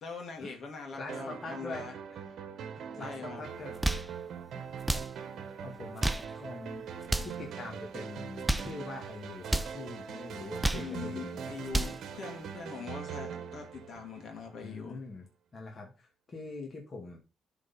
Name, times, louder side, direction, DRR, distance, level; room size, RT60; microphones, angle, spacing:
voice 1, 0.0-2.0 3.0-3.4 10.8-15.0, left 5 dB, 65° left, 3 dB, 2.4 m, -42 dB
voice 2, 0.9-1.9 2.8-3.9 4.5-4.7 5.6-6.8 7.2-11.5 14.6-17.2, left 3 dB, 40° left, 0 dB, 2.0 m, -43 dB
sound 1, 1.1-14.6, right 7 dB, 70° right, 1.1 m, -42 dB
sound 2, 3.6-4.1 4.8-5.1 5.8-6.3 7.0-7.4 8.3-8.8 9.4-9.8 10.4-10.9 11.5-12.0, right 1 dB, 10° right, 0.6 m, -31 dB
10.5 x 4.0 x 4.2 m, 0.31 s
cardioid pair, 90°, 0 cm